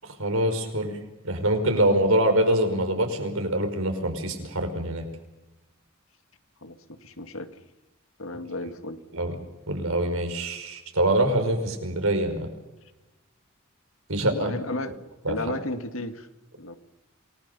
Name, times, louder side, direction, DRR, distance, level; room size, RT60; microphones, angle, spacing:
voice 1, 0.0-1.0 1.2-5.1 9.1-9.4 9.7-12.5 14.1-14.5 15.2-15.6, right 1 dB, 75° right, 5 dB, 5.3 m, -25 dB
voice 2, 7.0-7.5 8.2-9.0 14.2-14.9 15.3-16.3 16.6-16.7, left 2 dB, 70° left, 8 dB, 2.0 m, -33 dB
28.0 x 20.0 x 7.0 m, 1.0 s
head